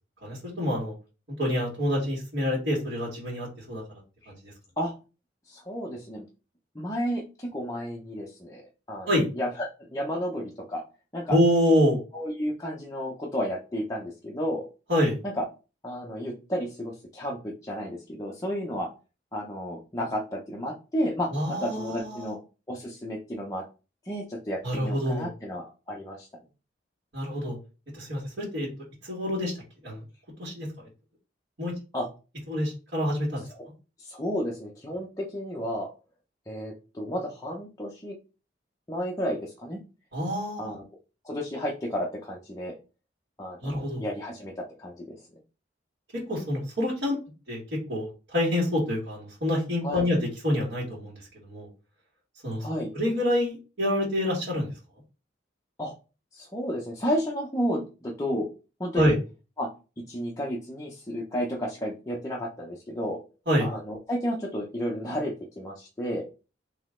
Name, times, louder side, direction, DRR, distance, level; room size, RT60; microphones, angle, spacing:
voice 1, 0.2-0.9 1.4-3.8 4.3-4.4 9.1-9.3 11.3-12.0 14.9-15.2 21.3-22.3 24.6-25.3 27.1-27.6 28.0-28.7 29.0-29.6 29.8-30.0 30.4-30.7 31.6-31.7 32.5-33.4 40.1-40.7 43.6-44.0 46.3-47.2 47.5-47.6 47.9-51.7 52.4-52.6 52.9-54.7 59.0-59.2 63.5-63.7, left 1 dB, 80° right, -9 dB, 2.1 m, -26 dB
voice 2, 5.5-6.2 6.7-8.6 8.9-9.1 9.3-10.8 11.1-11.4 12.1-14.7 15.2-15.4 15.8-18.9 19.3-22.4 22.7-23.6 24.0-26.3 31.9-32.1 34.0-35.9 36.5-38.1 38.9-39.8 40.6-40.8 41.2-42.7 43.4-45.2 49.8-50.1 52.6-52.9 55.8-55.9 56.3-58.5 58.8-59.2 59.6-59.7 60.0-63.2 63.6-66.3, equal, 20° left, -3 dB, 0.8 m, -32 dB
3.9 x 3.1 x 3.7 m, 0.32 s
head